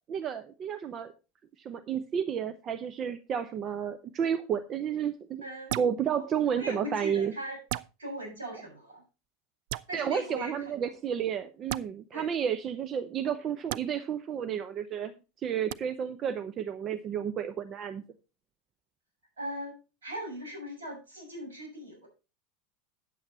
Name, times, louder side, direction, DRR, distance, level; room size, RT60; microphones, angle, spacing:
voice 1, 0.1-1.1 1.6-5.4 5.8-7.3 9.9-15.1 15.4-18.0, right 8 dB, 35° right, 10 dB, 0.7 m, -31 dB
voice 2, 5.4-5.7 6.1-6.2 6.5-7.6 8.0-9.0 9.9-10.9 12.1-12.3 19.4-19.8 20.0-22.1, right 1 dB, 75° right, -1 dB, 6.4 m, -39 dB
sound 1, 5.7-6.0 7.7-7.9 9.7-9.9 11.7-11.8 13.7-13.8 15.7-15.8, right 16 dB, 60° right, 0.4 m, -33 dB
9.2 x 8.0 x 4.2 m, 0.31 s
figure-of-eight pair, 80°, 0 cm